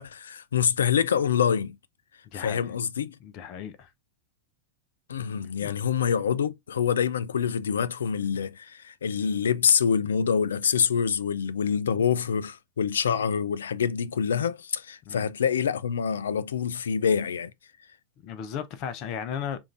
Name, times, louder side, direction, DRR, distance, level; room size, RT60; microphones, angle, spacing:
voice 1, 0.0-1.8 2.3-3.1 5.1-17.5, left 7 dB, 80° left, 0.4 m, -26 dB
voice 2, 2.3-2.7 3.2-3.9 5.6-5.8 15.0-15.3 18.2-19.6, left 8 dB, 45° left, 0.7 m, -35 dB
5.0 x 2.6 x 2.5 m
hypercardioid pair, 95°, 0 cm